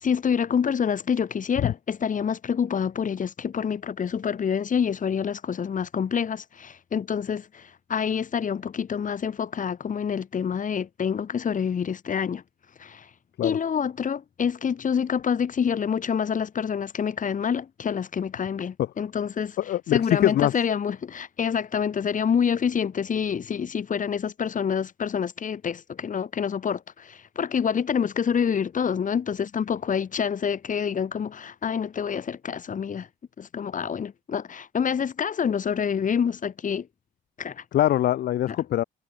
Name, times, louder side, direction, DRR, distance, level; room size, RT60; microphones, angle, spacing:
voice 1, 0.0-12.4 12.8-13.1 13.4-19.6 19.9-33.1 33.4-36.9 37.4-37.6 38.5-38.6, left 7 dB, 40° left, 1.1 m, -27 dB
voice 2, 19.6-20.5 37.7-38.8, left 12 dB, 55° left, 0.5 m, -22 dB
cardioid pair, 90°, 20 cm